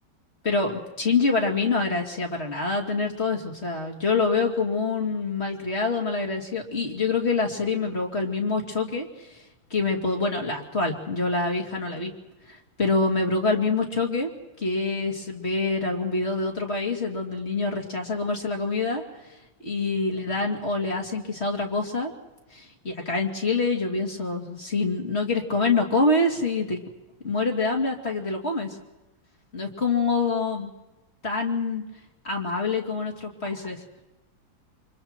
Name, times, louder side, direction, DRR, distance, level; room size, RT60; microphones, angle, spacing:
voice 1, 0.4-9.4 9.7-12.1 12.5-14.3 14.6-19.0 19.6-22.1 22.5-26.8 27.2-28.8 29.5-30.7 31.2-31.8 32.2-33.8, left 3 dB, 35° left, 0 dB, 3.1 m, -26 dB
29.0 x 24.5 x 4.5 m, 1.0 s
omnidirectional pair, 2.1 m